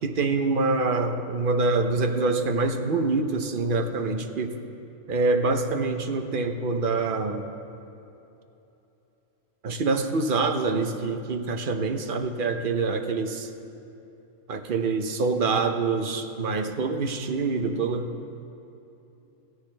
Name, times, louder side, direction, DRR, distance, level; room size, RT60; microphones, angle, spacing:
voice 1, 0.0-4.6 5.1-7.5 9.6-13.5 14.5-18.1, right 3 dB, 50° right, 6 dB, 0.8 m, -25 dB
16.5 x 14.0 x 3.3 m, 2.9 s
omnidirectional pair, 1.3 m